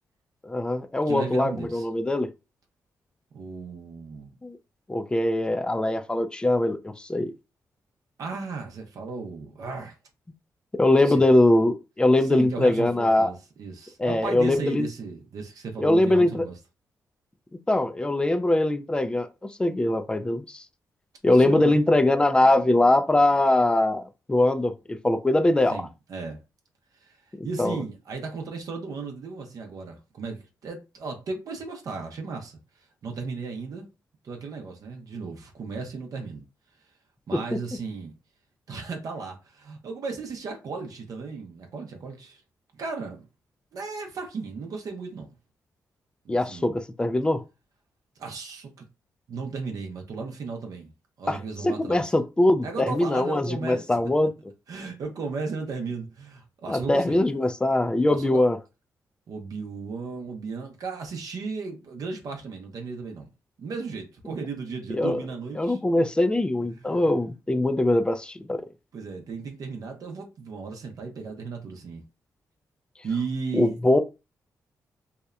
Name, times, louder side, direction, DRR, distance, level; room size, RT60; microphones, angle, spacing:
voice 1, 0.4-2.3 4.4-4.6 4.9-7.3 10.7-13.3 14.0-14.9 15.8-16.4 17.7-20.6 21.2-25.8 27.4-27.8 37.3-37.6 46.3-47.4 51.3-51.4 51.6-54.3 56.7-58.6 64.9-65.2 65.6-68.7 73.5-74.0, left 1 dB, 15° left, 0.3 m, -22 dB
voice 2, 1.1-1.9 3.3-4.4 8.2-10.0 11.0-11.2 12.2-16.5 21.3-21.8 25.7-26.4 27.0-27.2 27.4-32.6 33.0-33.9 34.2-36.4 37.3-38.1 38.7-42.4 42.7-43.2 43.7-45.3 46.2-46.7 48.2-48.9 49.3-50.9 51.2-52.1 52.6-54.3 54.7-57.2 58.1-58.4 59.3-63.3 63.6-65.8 66.8-67.0 68.9-72.0 73.0-73.7, right 4 dB, 65° right, 0.6 m, -35 dB
2.8 x 2.1 x 2.4 m
cardioid pair, 85°, 7 cm